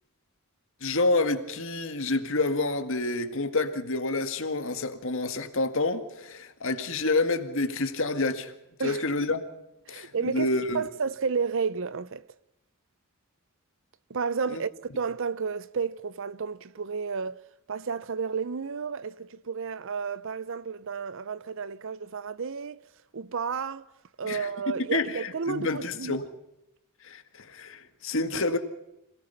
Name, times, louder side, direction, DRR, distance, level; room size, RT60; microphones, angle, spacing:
voice 1, 0.8-8.5 8.8-9.4 9.9-10.8 14.5-14.6 24.2-26.3 27.0-28.6, left 2 dB, 60° left, 1.9 m, -28 dB
voice 2, 9.9-12.3 14.1-17.4 17.7-22.8 23.1-23.9 24.2-26.2, right 5 dB, 60° right, 0.7 m, -32 dB
26.5 x 17.5 x 5.8 m
head